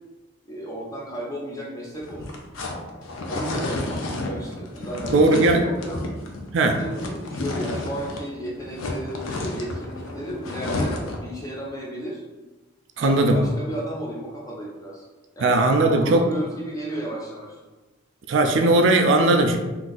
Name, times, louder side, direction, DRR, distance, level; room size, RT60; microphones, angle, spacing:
voice 1, 0.4-2.4 3.2-6.0 6.8-12.2 13.0-15.1 15.3-17.6, right 1 dB, 15° left, -4 dB, 0.6 m, -34 dB
sound 1, 2.0-8.3 8.6-11.3, left 2 dB, 80° left, 0.5 m, -31 dB
voice 2, 5.1-5.7 6.5-6.8 13.0-13.4 15.4-16.3 18.3-19.6, right 2 dB, 65° right, 4 dB, 0.3 m, -18 dB
2.6 x 2.4 x 3.9 m, 1.2 s
head